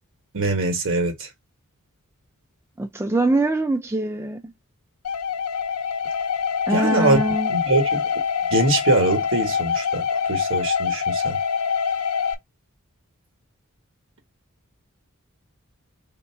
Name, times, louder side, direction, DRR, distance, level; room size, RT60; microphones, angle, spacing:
voice 1, 0.3-1.3 6.7-7.2 7.5-8.0 8.5-11.4, right 2 dB, 60° right, 1.4 m, -23 dB
voice 2, 2.8-4.4 6.7-7.5, right 2 dB, 10° right, 0.4 m, -23 dB
sound 1, 5.0-12.3, left 6 dB, 80° left, 0.7 m, -25 dB
3.4 x 2.9 x 4.4 m
head